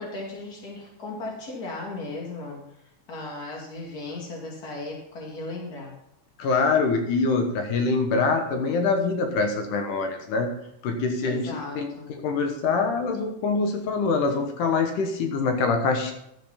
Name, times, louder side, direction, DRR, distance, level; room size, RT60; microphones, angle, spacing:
voice 1, 0.0-2.6 3.1-6.0 11.2-12.2, left 2 dB, 30° left, -1 dB, 2.6 m, -36 dB
voice 2, 6.4-10.5 10.8-11.5 11.8-11.9 12.2-16.1, left 4 dB, 90° left, 5 dB, 2.7 m, -24 dB
12.0 x 7.8 x 4.2 m, 0.78 s
omnidirectional pair, 3.6 m